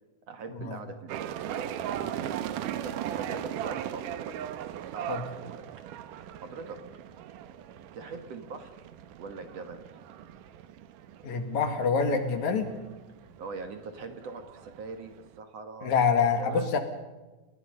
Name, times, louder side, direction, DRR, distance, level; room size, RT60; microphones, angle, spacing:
voice 1, 0.3-4.4 4.9-5.6 6.0-6.8 7.9-8.9 9.2-9.8 13.2-15.1 15.4-15.9 16.4-16.8, right 4 dB, 55° right, 7 dB, 2.4 m, -42 dB
sound 1, 1.1-15.4, right 11 dB, 80° right, 2.5 m, -38 dB
voice 2, 11.2-12.8 15.8-16.8, left 5 dB, 65° left, 7 dB, 3.2 m, -26 dB
29.5 x 20.0 x 5.5 m, 1.2 s
omnidirectional pair, 3.8 m